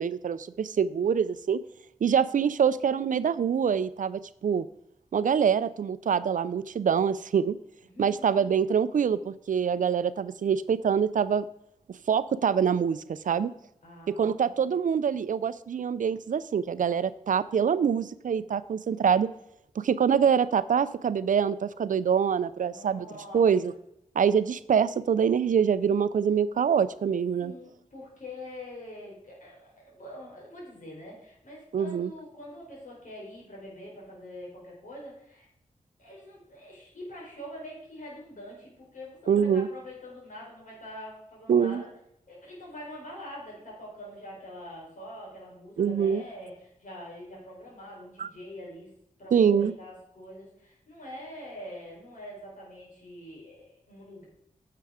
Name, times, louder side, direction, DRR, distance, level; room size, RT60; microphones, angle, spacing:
voice 1, 0.0-1.6 2.0-4.7 5.1-7.5 8.0-11.5 12.1-13.5 14.1-19.3 19.8-23.1 23.3-23.7 24.2-27.5 31.7-32.1 39.3-39.7 41.5-41.8 45.8-46.2 48.2-48.3 49.3-49.7, right 7 dB, 75° right, 15 dB, 0.5 m, -25 dB
voice 2, 7.9-8.2 13.8-14.6 22.7-23.8 27.4-35.5 36.0-41.9 42.3-48.9 49.2-54.3, left 1 dB, 70° left, -3 dB, 4.4 m, -44 dB
9.4 x 6.7 x 4.9 m, 0.77 s
cardioid pair, 65°, 14 cm